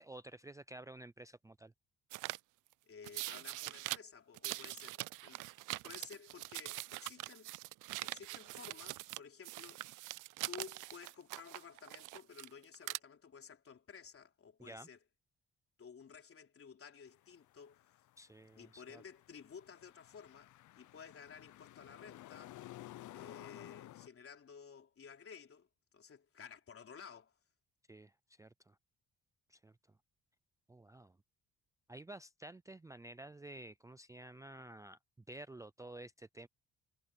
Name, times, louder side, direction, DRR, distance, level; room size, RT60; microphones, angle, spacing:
voice 1, 0.0-1.7 14.6-14.9 18.2-19.0 27.9-28.8 29.5-29.7 30.7-31.2 31.9-35.0 35.3-36.5, right 1 dB, 10° right, 0.5 m, -52 dB
sound 1, 2.1-2.4 3.0-4.0 4.3-9.2 9.4-12.5 12.7-13.0, right 19 dB, 90° right, 0.5 m, -43 dB
voice 2, 2.8-7.5 8.0-10.0 10.5-15.0 15.8-17.9 18.6-22.6 23.1-27.4, left 6 dB, 45° left, 3.9 m, -54 dB
sound 2, 17.1-24.1, left 15 dB, 75° left, 0.7 m, -54 dB
cardioid pair, 90°, 30 cm